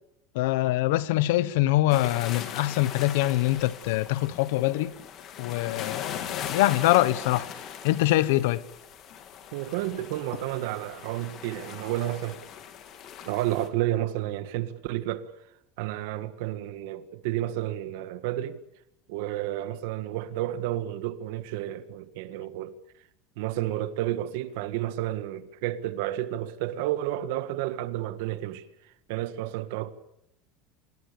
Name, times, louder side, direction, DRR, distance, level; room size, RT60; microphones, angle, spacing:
voice 1, 0.3-4.9 5.4-8.6, left 16 dB, 80° left, 1.1 m, -24 dB
sound 1, 1.9-13.7, left 8 dB, 40° left, 3.1 m, -40 dB
voice 2, 9.5-12.4 13.2-15.4 15.8-18.6 19.1-22.8 23.4-29.9, right 14 dB, 70° right, 1.7 m, -31 dB
26.0 x 21.0 x 7.0 m
supercardioid pair, 155°, 0 cm